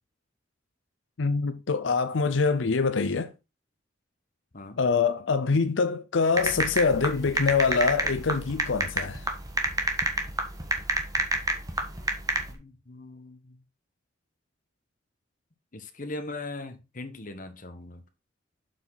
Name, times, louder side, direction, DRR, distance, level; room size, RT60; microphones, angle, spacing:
voice 1, 1.2-3.3 4.8-9.3, left 4 dB, 85° left, 0.6 m, -25 dB
sound 1, 6.4-12.5, right 2 dB, 20° right, 1.5 m, -28 dB
voice 2, 12.5-13.6 15.7-18.0, left 2 dB, 45° left, 1.3 m, -40 dB
7.5 x 5.9 x 4.0 m
head